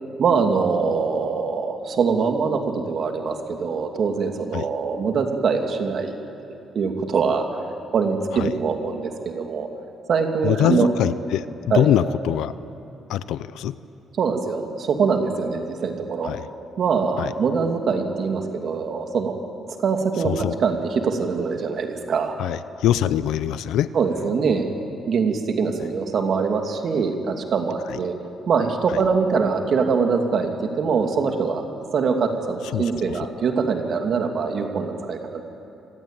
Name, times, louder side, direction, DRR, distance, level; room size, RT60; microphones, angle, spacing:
voice 1, 0.2-6.1 6.7-7.5 7.9-9.7 10.1-10.9 11.7-11.9 14.2-16.3 16.8-19.4 19.8-22.4 23.9-24.7 25.1-28.1 28.5-30.5 30.8-31.6 31.9-35.4, right 5 dB, 60° right, 4 dB, 2.6 m, -23 dB
voice 2, 10.4-11.4 11.7-12.5 13.1-13.7 16.2-16.5 17.2-17.3 20.2-20.5 22.4-23.9 27.9-28.0 28.9-29.0 32.7-33.2, left 11 dB, 85° left, 14 dB, 0.7 m, -23 dB
26.0 x 20.5 x 9.0 m, 3.0 s
cardioid pair, 90°, 0 cm